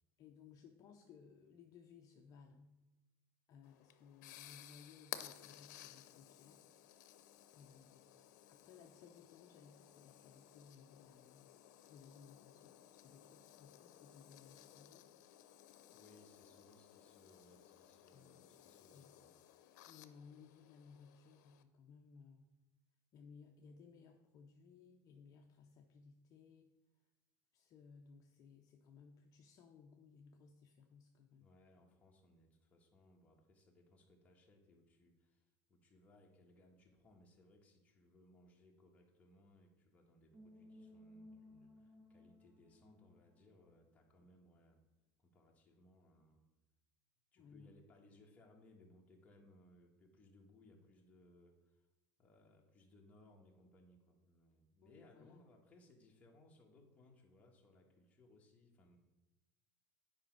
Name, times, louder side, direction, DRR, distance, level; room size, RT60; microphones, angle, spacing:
voice 1, 0.2-2.8 3.5-6.6 7.5-8.1 8.5-11.5 11.9-15.0 18.1-18.4 18.9-19.1 19.9-22.5 23.1-26.7 27.5-31.5 47.4-47.7 54.8-55.4, left 6 dB, 40° left, 3 dB, 0.7 m, -61 dB
sound 1, 3.6-21.6, left 12 dB, 85° left, 0.7 m, -57 dB
voice 2, 15.9-19.3 31.4-44.8 45.2-46.4 47.3-51.9 52.2-59.0, left 1 dB, 15° left, -1 dB, 1.5 m, -66 dB
sound 2, 40.3-44.2, left 1 dB, 30° right, 1.3 m, -60 dB
8.8 x 5.1 x 5.9 m, 1.1 s
supercardioid pair, 150°, 9 cm